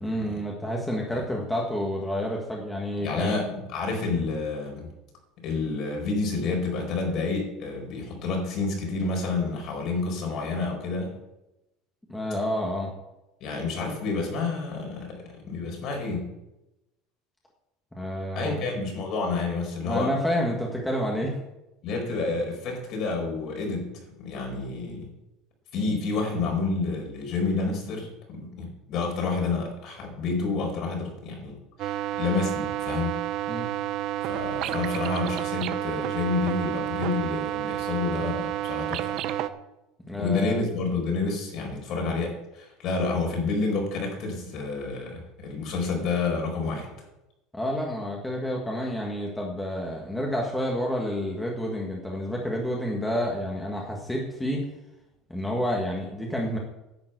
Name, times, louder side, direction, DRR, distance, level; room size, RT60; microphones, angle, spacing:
voice 1, 0.0-3.4 12.1-12.9 18.0-18.5 19.8-21.4 33.5-33.7 40.1-40.6 47.5-54.7 55.3-56.6, equal, 5° left, -2 dB, 1.8 m, -29 dB
voice 2, 3.0-4.9 5.4-11.1 13.4-16.3 18.3-20.1 21.8-25.1 25.7-33.2 34.3-39.2 40.1-46.9, left 3 dB, 50° left, 1 dB, 4.7 m, -29 dB
sound 1, 31.8-39.5, right 13 dB, 50° right, 0.8 m, -30 dB
10.5 x 7.3 x 8.1 m, 0.93 s
cardioid pair, 150°, 0 cm